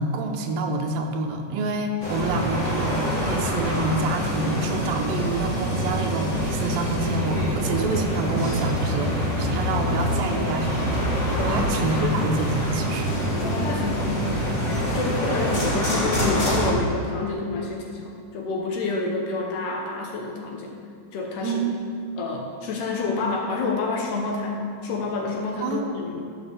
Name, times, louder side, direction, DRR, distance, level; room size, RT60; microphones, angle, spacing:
voice 1, 0.0-11.0 11.4-13.2 21.4-21.7 25.6-26.0, right 3 dB, 80° right, 1 dB, 2.6 m, -27 dB
sound 1, 2.0-16.7, equal, 30° left, 1.5 m, -25 dB
voice 2, 11.4-12.0 13.4-20.8 21.1-21.6 22.2-26.2, left 3 dB, 70° left, 0 dB, 2.4 m, -28 dB
13.5 x 5.1 x 6.7 m, 2.3 s
omnidirectional pair, 4.0 m